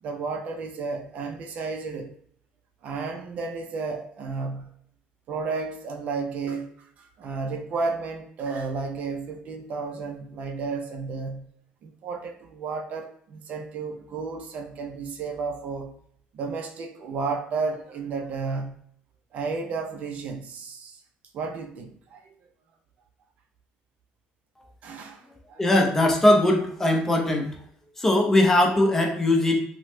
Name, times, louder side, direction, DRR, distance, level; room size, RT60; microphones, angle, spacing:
voice 1, 0.0-2.1 2.8-4.7 5.3-11.5 11.8-15.9 16.3-18.8 19.3-21.0 21.3-22.3 24.8-25.6, right 4 dB, 50° right, 0.4 m, -32 dB
voice 2, 25.6-27.6 28.0-29.6, left 1 dB, 10° left, 0.5 m, -20 dB
2.9 x 2.0 x 3.1 m
cardioid pair, 140°, 3 cm